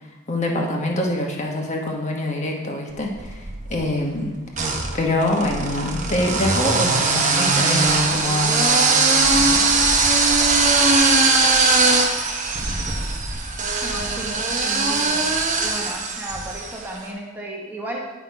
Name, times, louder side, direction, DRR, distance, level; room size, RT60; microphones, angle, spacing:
voice 1, 0.3-4.4 4.9-9.6, left 1 dB, 35° left, 1 dB, 1.1 m, -25 dB
sound 1, 3.1-3.8 4.5-16.8, right 3 dB, 35° right, 0.9 m, -20 dB
voice 2, 13.8-15.3 15.6-18.0, right 1 dB, 10° right, -3 dB, 1.1 m, -34 dB
9.3 x 5.8 x 4.6 m, 1.2 s
head